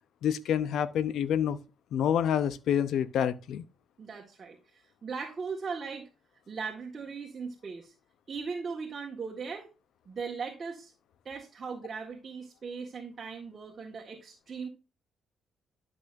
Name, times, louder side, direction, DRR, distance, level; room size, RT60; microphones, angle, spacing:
voice 1, 0.2-1.6 1.9-3.6, left 9 dB, 75° left, 0.7 m, -27 dB
voice 2, 4.0-6.1 6.5-7.9 8.3-9.7 10.1-10.9 11.3-14.7, right 5 dB, 40° right, 1.7 m, -38 dB
12.0 x 6.2 x 2.6 m
cardioid pair, 90°, 0 cm